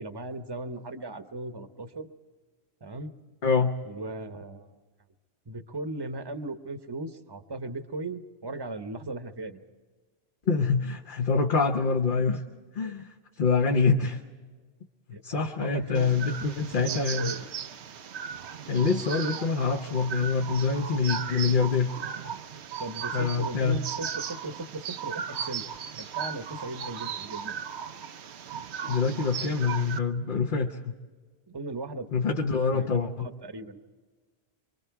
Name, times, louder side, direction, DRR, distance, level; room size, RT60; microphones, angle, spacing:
voice 1, 0.0-2.1 2.8-3.1 3.8-4.7 5.5-9.6 12.8-12.9 15.1-16.1 16.8-17.4 18.7-18.9 22.8-25.6 26.0-27.6 31.5-32.1 32.7-32.9 33.2-33.9, right 2 dB, 25° right, 9 dB, 0.9 m, -37 dB
voice 2, 3.4-3.7 10.5-12.4 12.8-14.2 15.1-17.3 18.6-21.9 23.1-23.8 28.9-30.9 32.1-33.3, left 5 dB, 55° left, 3 dB, 1.1 m, -25 dB
sound 1, 15.9-30.0, right 7 dB, 90° right, 1.1 m, -36 dB
25.5 x 24.0 x 4.7 m, 1.4 s
omnidirectional pair, 1.1 m